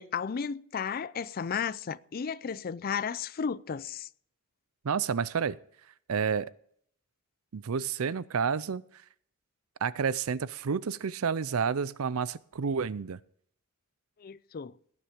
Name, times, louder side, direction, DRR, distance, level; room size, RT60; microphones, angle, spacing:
voice 1, 0.0-4.1 14.2-14.7, left 6 dB, 45° left, 0.4 m, -34 dB
voice 2, 4.8-5.6 6.1-6.5 7.5-8.8 9.8-13.2, right 6 dB, 80° right, 0.5 m, -30 dB
18.5 x 7.4 x 5.1 m
head